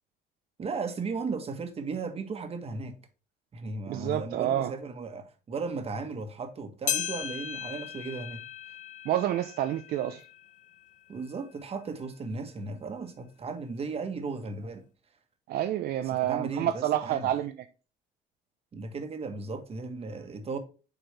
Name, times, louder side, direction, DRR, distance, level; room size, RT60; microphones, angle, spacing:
voice 1, 0.6-3.0 3.5-8.4 11.1-14.8 16.1-17.3 18.7-20.6, right 4 dB, 35° right, 1.4 m, -36 dB
voice 2, 3.9-4.7 9.0-10.2 15.5-17.6, right 12 dB, 65° right, 0.5 m, -28 dB
sound 1, 6.9-11.5 12.0-12.1 12.9-13.0 13.9-14.0, left 9 dB, 50° left, 1.0 m, -37 dB
7.8 x 4.4 x 3.3 m
cardioid pair, 110°, 17 cm